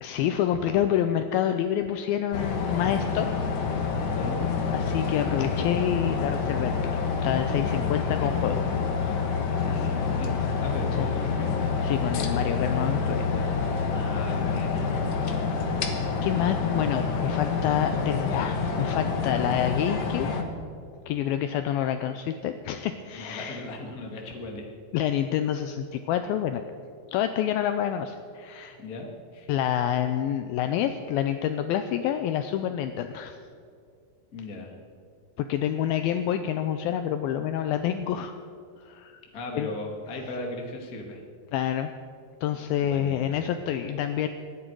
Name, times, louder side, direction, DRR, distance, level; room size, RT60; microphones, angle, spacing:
voice 1, 0.0-3.3 4.7-8.7 11.0-11.1 11.6-13.3 16.2-20.3 21.1-23.6 24.9-26.6 27.1-28.8 29.5-33.4 35.4-38.4 38.8-39.2 39.6-39.7 41.5-41.9 42.4-44.3, left 10 dB, 85° left, 8 dB, 2.1 m, -27 dB
sound 1, 2.3-20.4, left 5 dB, 65° left, 1.5 m, -27 dB
voice 2, 7.8-8.8 9.5-11.6 13.9-14.9 23.1-24.7 28.8-29.1 29.3-29.5 34.3-34.7 39.3-41.2 42.8-43.6, left 2 dB, 35° left, 1 dB, 1.5 m, -38 dB
25.5 x 10.0 x 4.7 m, 2.3 s
omnidirectional pair, 4.8 m